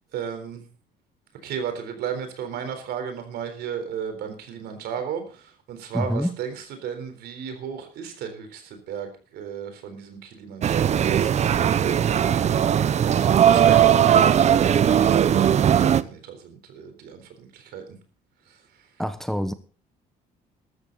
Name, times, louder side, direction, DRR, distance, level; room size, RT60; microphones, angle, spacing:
voice 1, 0.1-0.7 1.4-11.5 13.1-17.9 18.5-18.6, right 7 dB, 75° right, 3.9 m, -34 dB
voice 2, 5.9-6.3 19.0-19.5, equal, ahead, 1.0 m, -26 dB
sound 1, 10.6-16.0, right 9 dB, 40° right, 0.7 m, -18 dB
13.5 x 13.5 x 4.0 m
cardioid pair, 110°, 17 cm